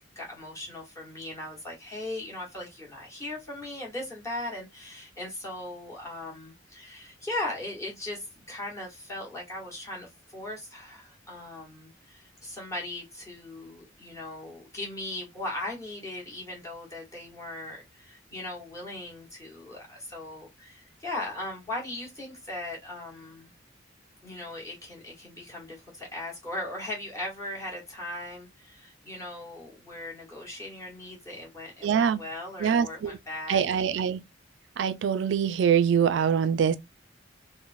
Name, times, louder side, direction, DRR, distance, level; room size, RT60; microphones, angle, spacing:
voice 1, 0.1-23.5 24.2-33.9, left 1 dB, 15° left, 1.0 m, -38 dB
voice 2, 31.8-32.2 32.6-33.2 33.5-34.2 34.8-36.8, right 7 dB, 65° right, 0.3 m, -24 dB
3.0 x 2.0 x 2.4 m
head